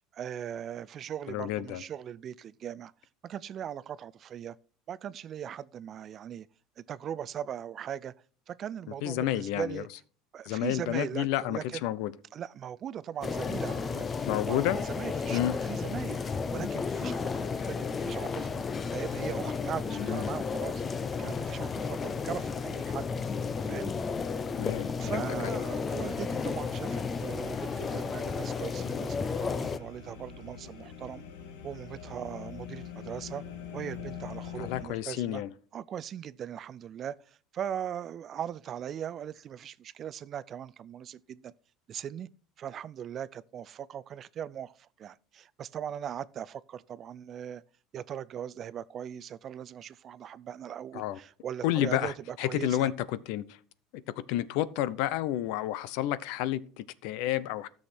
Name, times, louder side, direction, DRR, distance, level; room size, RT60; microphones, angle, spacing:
voice 1, 0.1-2.9 3.2-4.6 4.9-6.5 6.8-8.1 8.5-9.9 10.3-11.8 12.3-18.6 18.9-20.8 21.2-23.1 23.7-23.9 25.0-31.2 31.6-33.4 33.7-35.4 35.7-41.5 41.9-42.3 42.6-47.6 47.9-52.9, right 9 dB, 40° right, 0.4 m, -39 dB
voice 2, 1.3-1.8 9.0-9.8 10.5-12.1 14.3-14.8 15.3-15.5 19.9-20.3 24.6-25.6 34.6-35.5 50.9-51.2 51.6-52.1 52.4-52.9 53.3-53.4 54.3-57.7, left 13 dB, 70° left, 0.6 m, -30 dB
sound 1, 13.2-29.8, left 5 dB, 25° left, 0.7 m, -33 dB
sound 2, 21.2-34.8, left 7 dB, 90° left, 1.8 m, -46 dB
13.0 x 6.4 x 4.3 m
supercardioid pair, 125°, 0 cm